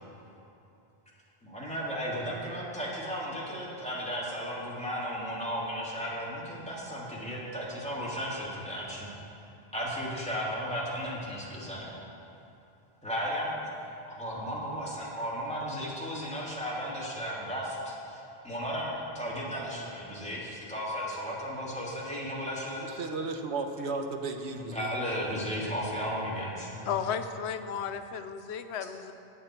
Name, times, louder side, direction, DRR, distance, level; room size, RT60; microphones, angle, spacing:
voice 1, 1.4-9.1 9.7-12.0 13.0-22.9 24.5-26.9, equal, 5° left, -7 dB, 2.5 m, -35 dB
voice 2, 22.8-24.9, right 3 dB, 85° right, 5 dB, 1.1 m, -34 dB
voice 3, 26.9-29.1, left 7 dB, 90° left, 9 dB, 0.9 m, -34 dB
14.5 x 8.8 x 4.4 m, 2.8 s
omnidirectional pair, 1.1 m